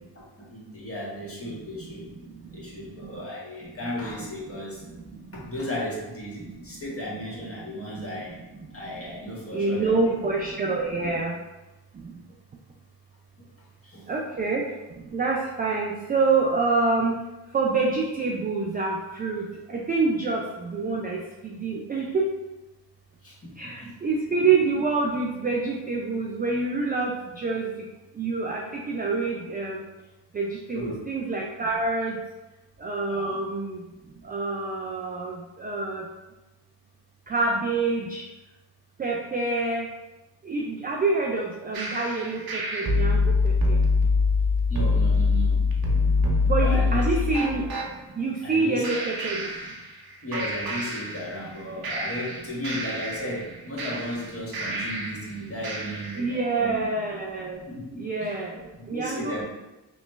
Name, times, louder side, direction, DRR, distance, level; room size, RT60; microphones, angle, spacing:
voice 1, 0.4-2.1 2.5-4.8 5.3-8.4 8.7-10.0 11.0-11.1 13.8-14.1 23.2-24.0 30.7-31.0 33.0-33.4 44.7-45.6 46.6-47.3 48.4-49.0 50.2-56.8 57.7-58.4 58.8-59.4, equal, 30° left, -5 dB, 1.3 m, -35 dB
voice 2, 9.5-11.3 14.1-14.7 15.1-17.1 17.5-19.4 19.7-22.3 23.6-27.1 27.4-27.7 28.2-29.8 30.3-32.2 32.8-33.8 34.3-35.3 35.6-36.0 37.3-38.2 39.0-39.8 40.5-43.2 43.4-43.8 46.5-47.7 48.2-49.5 56.2-57.6 58.0-58.5 58.9-59.4, right 3 dB, 20° right, -1 dB, 0.3 m, -26 dB
sound 1, 41.7-47.9 48.8-50.1 50.3-51.5 51.8-55.3 55.6-56.3, left 3 dB, 45° right, 0.8 m, -25 dB
3.0 x 2.1 x 3.1 m, 1.1 s
supercardioid pair, 45°, 49 cm